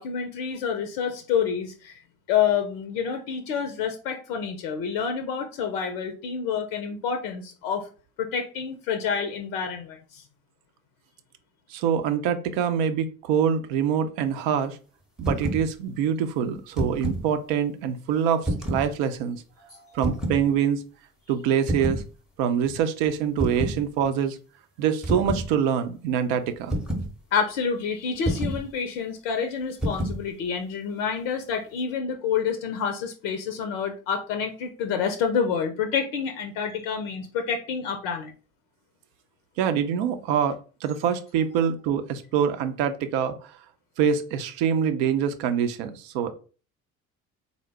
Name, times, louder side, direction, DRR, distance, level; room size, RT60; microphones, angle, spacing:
voice 1, 0.0-2.0 2.3-7.9 8.2-10.2 19.6-20.0 27.3-38.3, left 6 dB, 60° left, 6 dB, 0.6 m, -28 dB
voice 2, 11.7-14.8 15.2-19.4 19.9-20.8 21.3-22.0 22.4-24.4 24.8-26.8 39.6-43.5 44.0-46.3, right 8 dB, 55° right, 9 dB, 0.6 m, -25 dB
sound 1, 15.2-15.7 16.6-17.3 18.4-18.9 20.0-20.4 21.7-22.1 23.4-23.8 25.0-25.5 26.7-27.1 28.2-28.6 29.8-30.2, right 1 dB, ahead, 0.7 m, -28 dB
3.8 x 2.1 x 3.3 m, 0.37 s
figure-of-eight pair, 55°, 43 cm